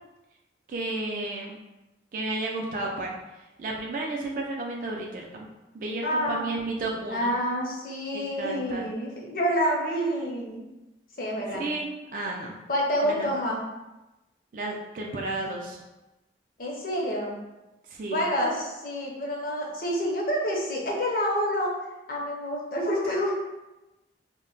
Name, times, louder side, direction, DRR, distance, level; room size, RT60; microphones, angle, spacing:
voice 1, 0.7-1.6 2.1-3.1 3.6-5.5 5.7-7.3 8.1-8.9 11.6-12.5 13.1-13.3 14.5-15.8 17.8-18.3, right 2 dB, 50° right, -1 dB, 0.3 m, -32 dB
voice 2, 6.0-6.5 7.1-10.6 11.2-11.6 12.7-13.6 16.6-17.4 18.1-21.7 22.1-23.3, equal, 50° left, -2 dB, 0.6 m, -28 dB
2.1 x 2.1 x 3.7 m, 1.0 s
head